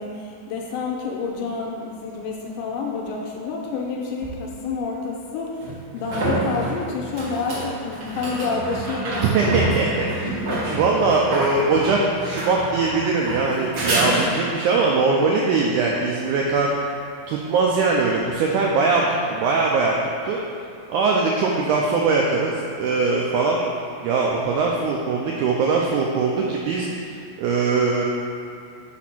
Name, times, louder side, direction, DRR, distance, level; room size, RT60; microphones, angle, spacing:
voice 1, 0.0-5.6 5.9-9.4 9.6-9.7, left 4 dB, 80° left, -1 dB, 2.0 m, -28 dB
sound 1, 4.2-4.3 5.6-14.7 18.1-18.2, right 1 dB, 65° right, 1.1 m, -27 dB
voice 2, 9.3-10.4 10.7-16.7 17.3-19.9 20.2-20.4 20.9-23.6 24.0-26.9 27.4-28.0, right 4 dB, 85° right, -2 dB, 1.7 m, -21 dB
5.2 x 4.2 x 5.8 m, 2.5 s
omnidirectional pair, 4.0 m